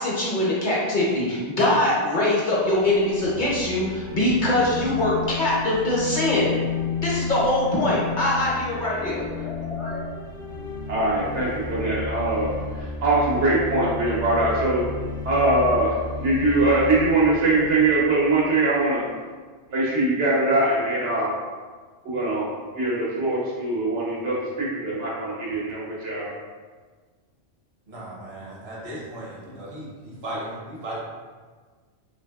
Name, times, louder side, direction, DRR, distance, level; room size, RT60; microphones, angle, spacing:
voice 1, 0.0-6.6 7.0-10.1, left 1 dB, 50° left, -5 dB, 0.7 m, -23 dB
sound 1, 2.6-18.6, left 4 dB, 35° right, 0.5 m, -33 dB
voice 2, 10.9-14.8 15.2-19.0 19.7-21.3 22.0-22.5 22.7-26.3, right 2 dB, 85° right, -6 dB, 1.2 m, -22 dB
voice 3, 27.9-31.0, right 1 dB, 65° right, -6 dB, 1.1 m, -36 dB
3.4 x 2.7 x 2.2 m, 1.5 s
omnidirectional pair, 1.1 m